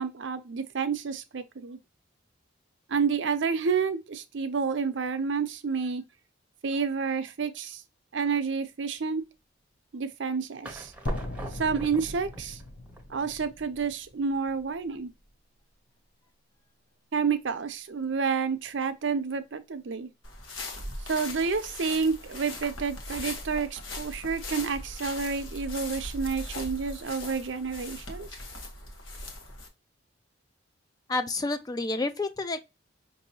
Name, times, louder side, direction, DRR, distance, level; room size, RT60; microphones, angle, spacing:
voice 1, 0.0-1.8 2.9-6.0 6.6-7.8 8.1-9.2 9.9-10.9 11.5-12.6 13.1-15.1 17.1-20.1 21.1-28.3, right 5 dB, 65° right, 0.6 m, -29 dB
sound 1, 10.6-13.6, right 1 dB, 5° right, 0.7 m, -43 dB
sound 2, 11.1-15.1, left 1 dB, 45° left, 0.7 m, -38 dB
sound 3, 20.2-29.7, left 2 dB, 85° left, 1.1 m, -39 dB
voice 2, 31.1-32.6, left 3 dB, 20° left, 0.3 m, -29 dB
5.4 x 2.7 x 2.7 m
head